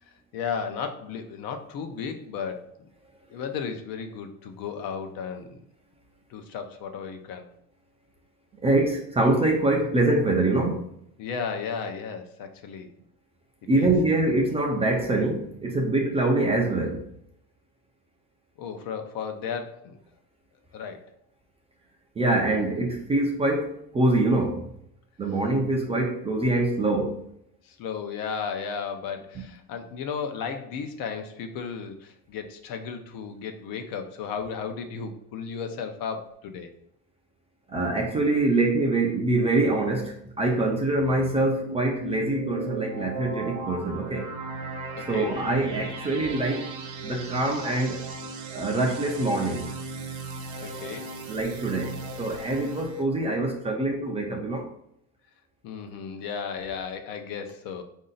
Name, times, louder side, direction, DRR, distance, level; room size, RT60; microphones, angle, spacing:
voice 1, 0.3-2.7 3.3-5.6 6.3-7.5 11.2-12.9 13.7-13.9 18.6-20.0 20.7-21.0 27.6-36.7 44.9-45.9 50.6-51.1 55.6-57.8, left 6 dB, 60° left, 6 dB, 0.7 m, -34 dB
voice 2, 8.6-10.8 13.7-17.1 22.2-24.7 25.2-27.2 37.7-44.3 45.1-46.7 47.0-48.0 48.5-49.7 51.3-54.7, right 2 dB, 15° right, 0 dB, 0.4 m, -24 dB
sound 1, 40.5-53.0, right 3 dB, 65° right, 1.0 m, -36 dB
4.2 x 2.7 x 3.8 m, 0.73 s
cardioid pair, 145°, 39 cm